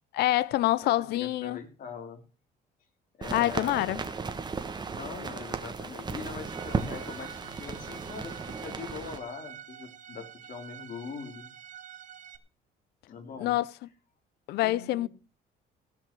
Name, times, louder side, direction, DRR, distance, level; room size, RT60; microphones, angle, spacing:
voice 1, 0.1-1.6 3.3-4.0 13.4-13.7 14.5-15.1, left 15 dB, 75° left, 0.6 m, -26 dB
voice 2, 0.8-2.2 3.2-3.8 4.9-11.5 13.1-13.5 14.6-15.1, left 5 dB, 50° left, 3.4 m, -42 dB
sound 1, 3.2-9.2, right 4 dB, 25° right, 1.6 m, -35 dB
Bowed string instrument, 6.4-12.4, right 9 dB, 45° right, 1.2 m, -48 dB
17.0 x 5.9 x 6.7 m
cardioid pair, 110°, 17 cm